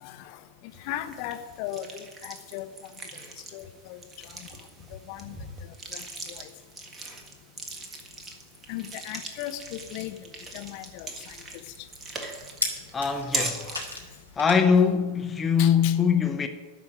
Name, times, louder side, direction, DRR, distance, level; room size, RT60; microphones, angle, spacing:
voice 1, 0.0-0.4 0.8-2.7 3.5-4.3 5.1-5.4 5.6-6.5 8.7-10.2 10.5-11.4 13.2-13.9 15.6-16.0, left 13 dB, 45° left, 0.9 m, -38 dB
sound 1, 0.7-14.2, right 3 dB, 20° right, 1.8 m, -40 dB
sound 2, 9.6-15.0, left 1 dB, 90° left, 2.4 m, -39 dB
voice 2, 12.9-13.7 14.4-16.5, left 6 dB, 20° left, 0.8 m, -22 dB
13.0 x 5.8 x 9.2 m
figure-of-eight pair, 90°, 0 cm